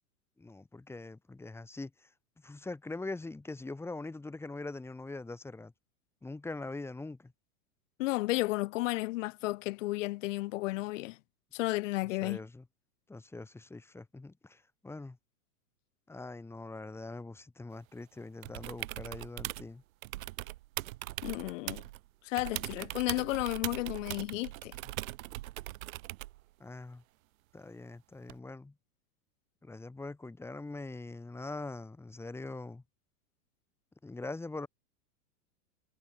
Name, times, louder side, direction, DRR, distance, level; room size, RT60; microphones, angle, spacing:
voice 1, 0.4-2.1 2.4-5.7 6.2-7.3 12.2-12.6 13.1-15.2 16.1-19.8 26.6-27.0 27.5-28.7 29.6-32.8 34.0-34.7, left 3 dB, 5° left, 2.2 m, -42 dB
voice 2, 8.0-11.2 11.5-12.4 21.2-21.8 22.2-24.8, left 19 dB, 55° left, 1.4 m, -33 dB
sound 1, 18.4-19.7 20.0-22.0 22.4-26.4 28.3-28.4, right 17 dB, 60° right, 1.0 m, -40 dB
hypercardioid pair, 140°, 46 cm